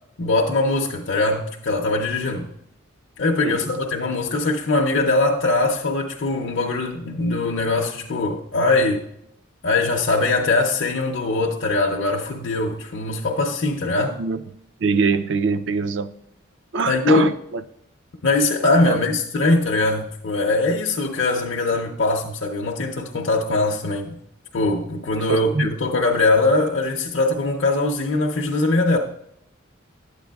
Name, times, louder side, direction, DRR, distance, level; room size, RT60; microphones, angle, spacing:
voice 1, 0.2-2.5 3.2-9.0 9.6-14.2 16.9-17.3 18.2-24.2 24.5-29.0, left 2 dB, 65° left, 0.6 m, -21 dB
voice 2, 14.8-16.1 16.7-17.6 18.9-19.0 25.3-25.7, right 4 dB, 65° right, 0.4 m, -23 dB
12.0 x 8.2 x 2.3 m
head